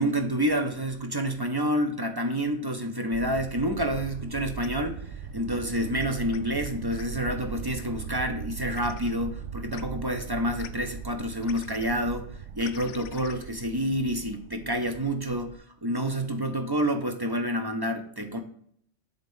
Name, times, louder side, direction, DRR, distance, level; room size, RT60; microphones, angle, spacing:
voice 1, 0.0-18.4, equal, 25° right, 5 dB, 0.5 m, -28 dB
sound 1, 3.1-15.6, right 7 dB, 70° right, 0.9 m, -39 dB
sound 2, 4.6-4.7 5.9-7.1 8.7-9.2 9.7-9.8 10.6-10.7 11.4-11.9 12.6-13.4, left 10 dB, 75° left, 0.9 m, -45 dB
7.4 x 3.6 x 5.5 m, 0.63 s
omnidirectional pair, 1.3 m